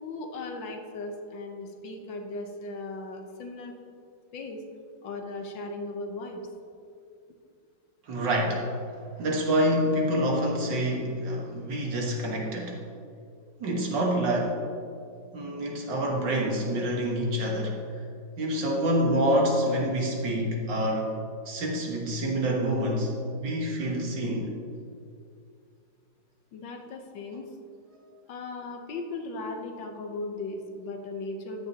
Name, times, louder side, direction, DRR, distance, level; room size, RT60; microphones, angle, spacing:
voice 1, 0.0-3.7 4.3-4.6 5.0-6.5 26.5-27.5 28.3-31.7, left 2 dB, 70° left, 3 dB, 1.7 m, -37 dB
voice 2, 8.1-8.8 9.2-12.8 13.6-14.6 15.3-17.8 18.4-21.1 21.5-23.1 23.4-24.5, equal, 65° right, -1 dB, 2.1 m, -27 dB
14.0 x 10.5 x 2.9 m, 2.4 s
omnidirectional pair, 2.1 m